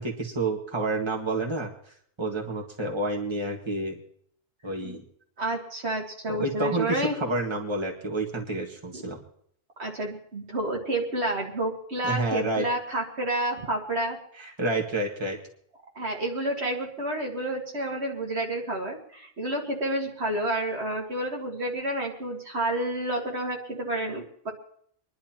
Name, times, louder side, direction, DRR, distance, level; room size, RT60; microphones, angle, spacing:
voice 1, 0.0-1.7 2.2-4.0 4.6-5.0 6.3-9.2 12.0-12.6 14.4-15.4, right 2 dB, 25° right, -1 dB, 1.7 m, -29 dB
voice 2, 5.4-7.2 8.9-9.0 9.8-14.2 16.0-24.5, right 1 dB, 65° right, 0 dB, 2.0 m, -29 dB
26.5 x 11.0 x 2.9 m, 0.65 s
omnidirectional pair, 1.2 m